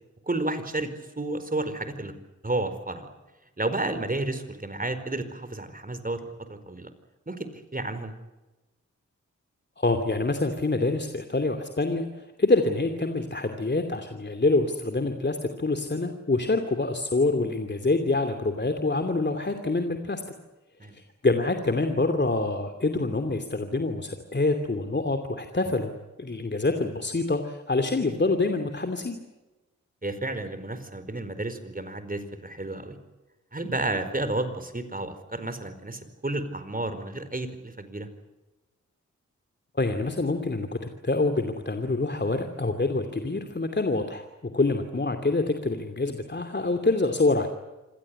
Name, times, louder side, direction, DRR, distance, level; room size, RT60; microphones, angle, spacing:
voice 1, 0.3-2.1 2.4-3.1 3.6-6.9 7.3-7.5 7.7-8.1 20.8-20.9 30.0-33.0 33.5-38.1, right 2 dB, 30° right, 10 dB, 4.6 m, -31 dB
voice 2, 9.8-20.2 20.9-25.9 26.2-29.2 39.7-47.5, left 2 dB, 35° left, 6 dB, 2.8 m, -26 dB
26.5 x 17.0 x 9.7 m, 1.1 s
cardioid pair, 45°, 30 cm